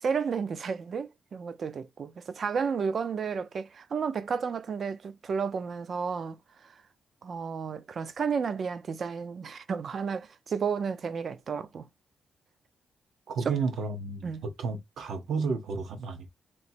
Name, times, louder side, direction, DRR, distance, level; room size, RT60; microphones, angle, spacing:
voice 1, 0.0-6.8 7.2-11.9 13.5-13.6 14.2-14.4, right 6 dB, 55° right, 0.5 m, -32 dB
voice 2, 13.3-16.3, right 4 dB, 80° right, 1.1 m, -32 dB
3.2 x 2.9 x 4.3 m
cardioid pair, 100°, 0 cm